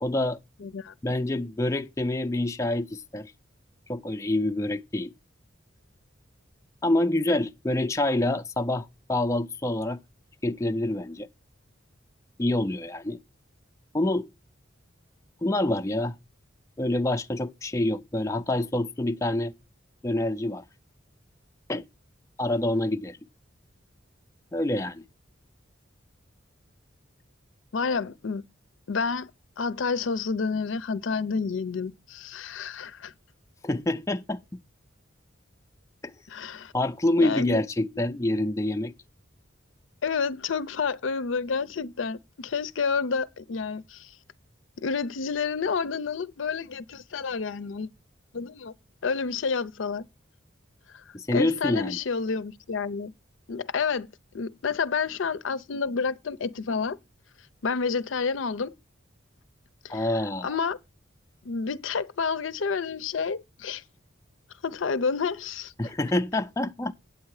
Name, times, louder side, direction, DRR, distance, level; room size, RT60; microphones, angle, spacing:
voice 1, 0.0-0.4 1.0-3.3 3.9-5.1 6.8-10.0 10.4-11.3 12.4-13.2 13.9-14.3 15.4-16.1 16.8-19.5 20.0-20.6 21.7-21.8 22.4-23.2 24.5-25.0 33.6-34.4 36.0-36.1 36.7-38.9 51.1-52.0 59.9-60.6 65.8-66.9, left 1 dB, 15° left, 0.4 m, -26 dB
voice 2, 0.6-0.9 27.7-28.4 28.9-29.3 29.6-33.1 36.3-36.7 37.2-37.6 40.0-44.1 44.8-47.9 48.3-48.7 49.0-50.0 50.9-51.0 51.3-53.1 53.5-54.1 54.3-57.0 57.6-58.7 59.8-60.8 61.4-63.8 64.6-65.7, left 5 dB, 80° left, 0.6 m, -29 dB
8.5 x 8.3 x 4.7 m
head